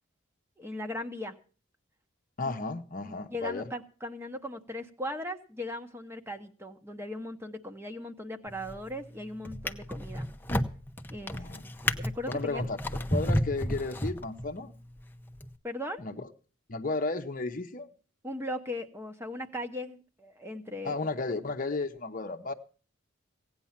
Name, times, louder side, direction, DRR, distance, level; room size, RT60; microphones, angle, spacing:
voice 1, 0.6-1.4 3.0-10.3 11.1-11.5 11.8-12.6 15.6-16.0 18.2-21.0, left 1 dB, 10° right, 1.0 m, -38 dB
voice 2, 2.4-3.7 11.3-11.6 12.3-14.8 16.0-16.3 16.7-17.9 20.8-22.5, left 3 dB, 40° left, 0.8 m, -34 dB
Drawer open or close, 8.5-8.9 9.5-14.6 15.3-15.5, left 1 dB, 10° left, 0.7 m, -32 dB
17.0 x 9.4 x 5.8 m
head